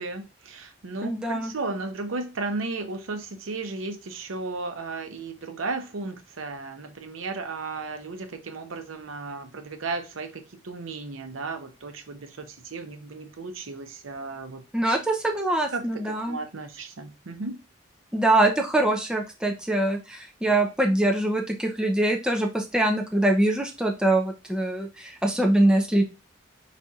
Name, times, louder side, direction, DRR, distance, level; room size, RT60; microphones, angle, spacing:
voice 1, 0.0-15.0 15.7-17.6, right 3 dB, 90° right, 7 dB, 0.7 m, -35 dB
voice 2, 1.0-1.5 14.7-16.4 18.1-26.0, right 1 dB, 5° right, 2 dB, 0.5 m, -23 dB
4.2 x 4.1 x 2.4 m, 0.29 s
head